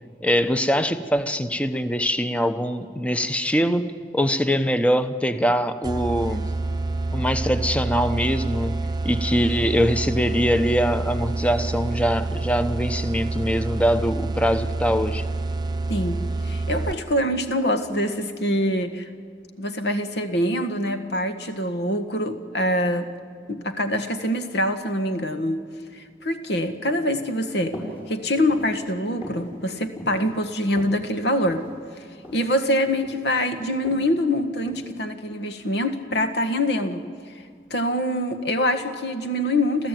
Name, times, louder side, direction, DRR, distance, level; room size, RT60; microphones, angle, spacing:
voice 1, 0.2-6.5 7.1-15.2, equal, 5° left, 10 dB, 0.9 m, -23 dB
sound 1, 5.8-17.2, right 2 dB, 25° right, 0.8 m, -28 dB
voice 2, 16.4-19.1 19.6-23.1 23.5-25.7 25.9-27.8 28.1-31.7 32.3-37.0 37.7-39.9, left 1 dB, 70° left, 8 dB, 1.7 m, -24 dB
sound 2, 27.7-28.0 28.4-28.7 29.2-29.5 30.0-30.2 30.7-31.7 32.2-32.5 32.8-33.3 33.8-34.0 34.7-34.9, equal, 35° left, 5.9 m, -37 dB
29.0 x 14.0 x 9.3 m, 2.2 s
head